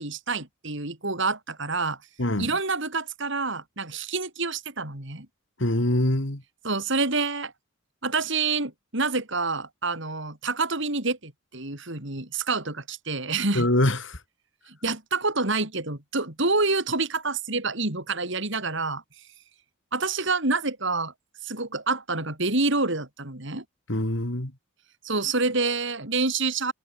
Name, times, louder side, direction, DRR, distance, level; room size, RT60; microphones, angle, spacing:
voice 1, 0.0-2.0 2.4-5.3 6.6-7.5 8.0-13.7 14.7-19.0 19.9-21.1 21.4-23.6 25.0-26.7, right 3 dB, 60° right, 4.1 m, -27 dB
voice 2, 2.2-2.5 5.6-6.4 13.5-14.2 23.9-24.5, left 1 dB, 60° left, 3.0 m, -24 dB
head